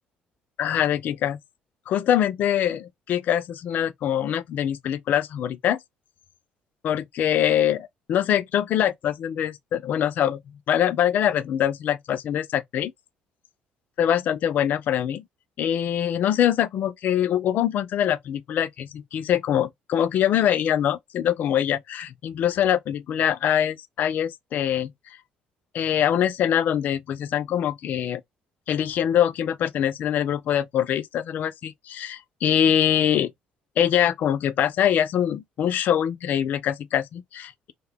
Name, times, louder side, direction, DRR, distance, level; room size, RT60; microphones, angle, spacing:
voice 1, 0.6-1.4 1.9-5.8 6.8-10.4 10.7-12.9 14.0-15.2 15.6-24.9 25.7-28.2 28.7-33.3 33.8-37.7, left 10 dB, 60° left, 0.4 m, -23 dB
2.6 x 2.2 x 3.4 m
cardioid pair, 95°, 3 cm